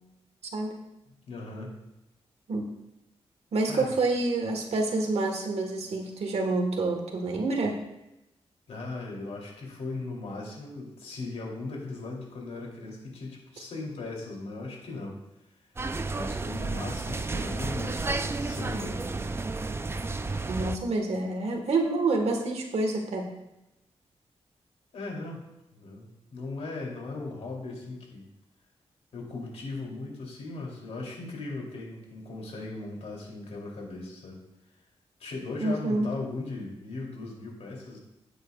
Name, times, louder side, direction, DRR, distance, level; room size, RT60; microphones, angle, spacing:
voice 1, 1.3-1.7 3.7-3.9 8.7-15.1 16.1-19.0 24.9-25.4 25.7-28.3 29.1-34.4 35.2-38.0, left 3 dB, 75° left, -1 dB, 3.1 m, -38 dB
voice 2, 3.5-7.8 20.5-23.3 35.6-36.1, right 3 dB, 75° right, 3 dB, 1.5 m, -27 dB
sound 1, 15.8-20.8, right 3 dB, 20° right, 0.4 m, -32 dB
13.0 x 9.3 x 2.4 m, 0.90 s
wide cardioid pair, 100°, 11 cm